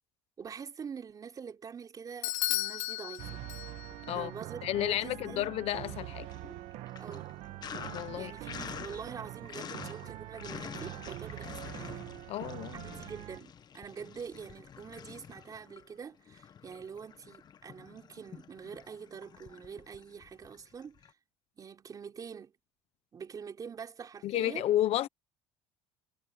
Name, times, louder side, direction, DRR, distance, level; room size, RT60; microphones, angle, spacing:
voice 1, 0.4-3.4 4.1-5.5 7.0-7.3 8.2-12.0 12.8-21.0 21.6-22.5 23.1-24.7, right 6 dB, 30° right, 4.0 m, -45 dB
Bell / Doorbell, 2.2-4.1, left 18 dB, 80° left, 1.4 m, -34 dB
sound 1, 3.2-13.4, right 16 dB, 65° right, 1.4 m, -44 dB
Sink (filling or washing), 3.8-4.7 5.0-21.1, left 8 dB, 35° left, 1.1 m, -48 dB
voice 2, 4.6-6.3 7.9-8.3 12.3-12.9 24.2-25.1, left 13 dB, 60° left, 1.0 m, -31 dB
cardioid pair, 125°, 12 cm